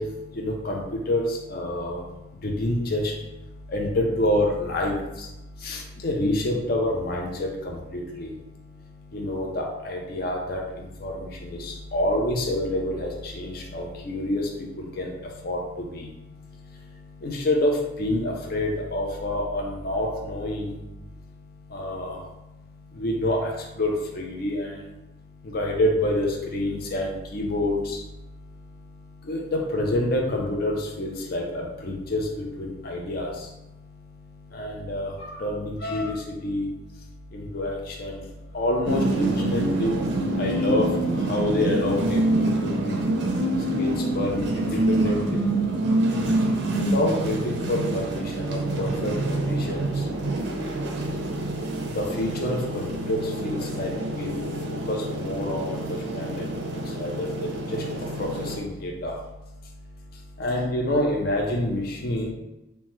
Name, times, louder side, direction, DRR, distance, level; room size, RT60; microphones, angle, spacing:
voice 1, 0.0-62.3, left 1 dB, 45° left, 0 dB, 0.4 m, -29 dB
sound 1, 38.9-58.6, right 1 dB, 55° right, 0.4 m, -26 dB
2.7 x 2.1 x 3.1 m, 1.0 s
head